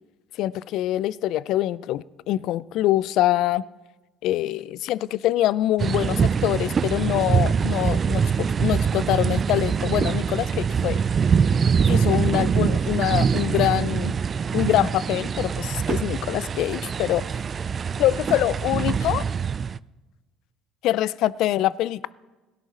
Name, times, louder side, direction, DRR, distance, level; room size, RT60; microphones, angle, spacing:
voice 1, 0.4-3.6 4.2-11.0 11.9-14.1 14.5-17.2 18.0-19.2 20.8-22.0, left 14 dB, 70° left, 0.4 m, -24 dB
sound 1, 5.8-19.8, right 6 dB, 40° right, 0.3 m, -23 dB
17.0 x 10.5 x 4.2 m
supercardioid pair, 80°, 0 cm